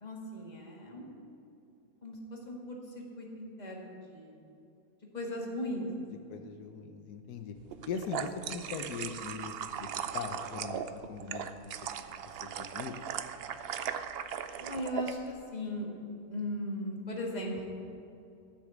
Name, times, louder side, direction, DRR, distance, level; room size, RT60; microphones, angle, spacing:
voice 1, 0.0-1.3 2.0-4.4 5.1-6.9 14.2-14.3 14.6-15.9 16.3-17.7, left 1 dB, 25° left, -1 dB, 2.0 m, -38 dB
voice 2, 6.3-7.5 7.9-9.9 10.1-11.5 12.4-13.0, left 6 dB, 90° left, 6 dB, 1.4 m, -40 dB
sound 1, 7.7-15.1, right 8 dB, 65° right, 0.6 m, -38 dB
13.5 x 6.5 x 8.2 m, 2.7 s
omnidirectional pair, 1.6 m